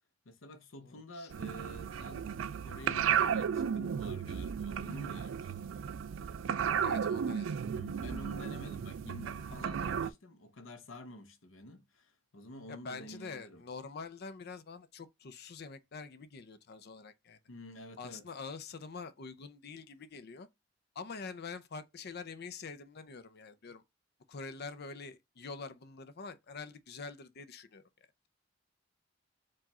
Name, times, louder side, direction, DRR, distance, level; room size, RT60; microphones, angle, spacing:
voice 1, 0.2-5.7 7.7-13.6 17.5-18.3, left 1 dB, 85° left, 0.9 m, -49 dB
voice 2, 0.8-1.3 6.8-7.6 12.7-17.4 18.0-20.5 21.0-23.8 24.3-27.8, left 4 dB, 55° left, 0.5 m, -45 dB
sound 1, 1.3-10.1, right 8 dB, 75° right, 0.4 m, -34 dB
4.7 x 2.5 x 4.1 m
head